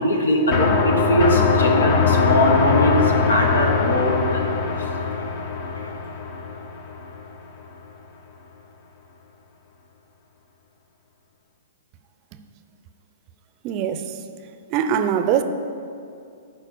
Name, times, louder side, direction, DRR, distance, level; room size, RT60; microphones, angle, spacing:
voice 1, 0.0-4.5 5.8-5.9, equal, 85° left, 1 dB, 1.5 m, -21 dB
sound 1, 0.5-7.2, left 4 dB, 50° left, 1.1 m, -21 dB
voice 2, 13.6-14.2 14.7-15.4, right 9 dB, 40° right, 10 dB, 0.6 m, -22 dB
11.5 x 4.6 x 6.7 m, 2.5 s
hypercardioid pair, 120°, 0 cm